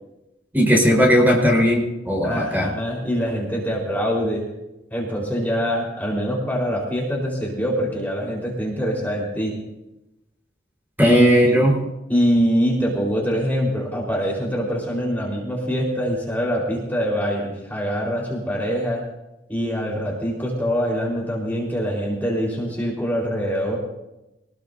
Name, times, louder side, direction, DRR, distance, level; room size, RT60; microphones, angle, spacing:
voice 1, 0.5-2.7 11.0-11.8, equal, 10° right, -1 dB, 4.6 m, -17 dB
voice 2, 2.2-4.4 4.9-9.6 11.1-11.6 12.1-19.0 19.5-23.8, equal, 10° left, -4 dB, 4.5 m, -24 dB
25.0 x 20.0 x 2.8 m, 0.93 s
head